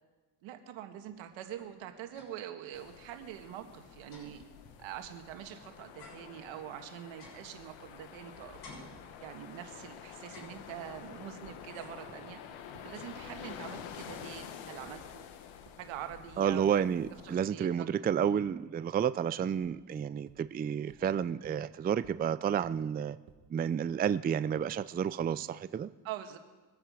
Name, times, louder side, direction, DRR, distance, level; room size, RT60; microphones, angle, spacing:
voice 1, 0.4-4.4 4.8-8.6 9.2-15.2 15.8-16.7 17.2-18.3 26.0-26.4, right 11 dB, 85° right, 7 dB, 1.6 m, -45 dB
sound 1, 1.1-2.6 2.9-3.0 3.3-5.5 6.0-8.2 8.6-9.7 10.2-11.1 11.7-12.2 12.5-13.7, left 2 dB, 55° left, 6.5 m, -56 dB
sound 2, 2.7-17.3, left 8 dB, 80° left, 1.4 m, -48 dB
sound 3, 11.4-11.6 12.1-12.2 12.7-12.8 13.4-13.5 14.1-14.2 14.9-15.0 15.7-15.8 16.5-16.6 18.5-18.6 19.6-19.7 20.3-20.4 20.9-21.0 21.4-21.6 22.0-22.1 22.6-22.7 23.3-23.4 23.9-24.0 24.6-24.7 25.2-25.3, right 10 dB, 65° right, 1.7 m, -55 dB
voice 2, 16.4-23.2 23.5-25.9, right 8 dB, 20° right, 15 dB, 0.4 m, -31 dB
23.0 x 8.9 x 5.0 m, 1.2 s
cardioid pair, 90°, 45 cm